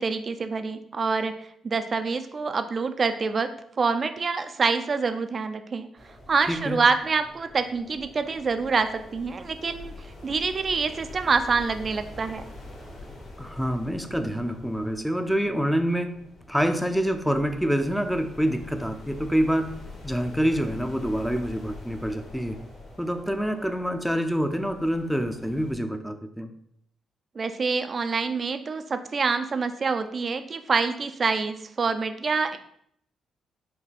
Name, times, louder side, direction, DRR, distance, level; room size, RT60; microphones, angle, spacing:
voice 1, 0.0-1.3 1.6-3.5 3.8-5.9 6.3-9.9 10.2-12.4 27.4-32.6, right 4 dB, 50° right, 9 dB, 0.5 m, -26 dB
sound 1, 6.0-25.7, left 2 dB, 80° left, 1.8 m, -45 dB
voice 2, 6.5-6.8 13.4-16.1 16.5-19.7 20.0-22.6 23.0-26.5, equal, ahead, 7 dB, 0.6 m, -26 dB
5.4 x 2.3 x 4.2 m, 0.68 s
supercardioid pair, 55°, 0 cm